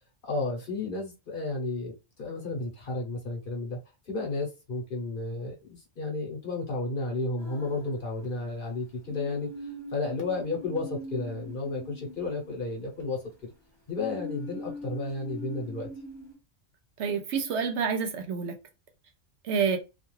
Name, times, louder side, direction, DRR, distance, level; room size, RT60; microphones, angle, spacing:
voice 1, 0.2-1.9 2.2-3.8 4.1-9.5 9.9-13.2 13.9-15.9, left 3 dB, 50° left, 0.9 m, -32 dB
sound 1, 7.4-8.4 9.1-13.0 13.9-16.3, equal, 15° right, 1.0 m, -42 dB
voice 2, 17.0-18.5 19.4-19.8, right 6 dB, 70° right, 0.8 m, -28 dB
2.3 x 2.3 x 3.0 m
omnidirectional pair, 1.3 m